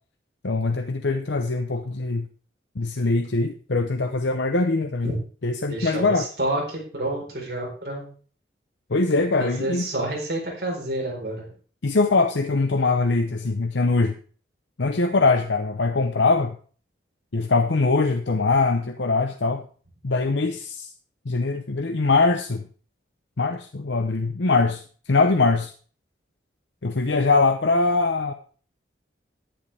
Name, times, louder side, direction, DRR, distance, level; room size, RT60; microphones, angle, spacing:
voice 1, 0.4-2.3 2.8-5.1 5.4-6.2 8.9-9.9 11.8-14.1 14.8-16.6 17.3-19.6 20.0-20.9 21.3-22.6 23.4-24.8 25.1-25.7 26.8-28.3, left 3 dB, 80° left, 6 dB, 0.8 m, -22 dB
voice 2, 5.7-8.1 9.4-11.4, right 1 dB, 55° right, -1 dB, 4.4 m, -29 dB
11.5 x 10.0 x 3.4 m, 0.41 s
head